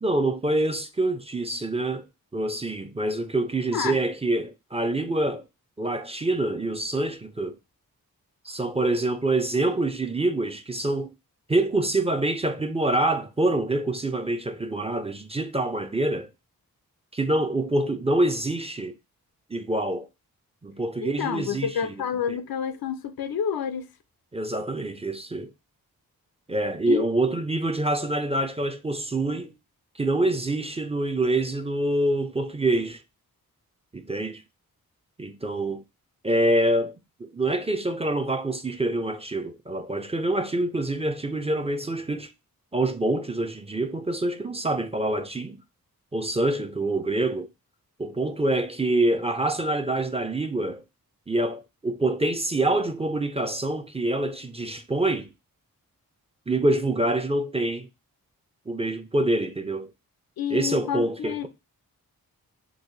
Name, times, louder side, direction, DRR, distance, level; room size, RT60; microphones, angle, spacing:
voice 1, 0.0-2.1 2.3-5.4 5.8-7.6 8.4-11.1 11.5-16.3 17.1-18.9 19.5-20.1 20.6-22.0 24.3-25.5 26.5-29.5 30.0-33.0 33.9-34.4 35.2-35.8 36.2-36.9 37.2-42.3 42.7-45.6 46.1-47.5 48.0-50.8 51.3-55.3 56.5-57.9 58.7-59.9 60.5-61.5, right 2 dB, 15° right, 0.4 m, -26 dB
voice 2, 21.0-23.9 26.9-27.0 60.4-61.5, left 8 dB, 70° left, 0.5 m, -29 dB
3.7 x 2.1 x 3.1 m
cardioid pair, 45°, 37 cm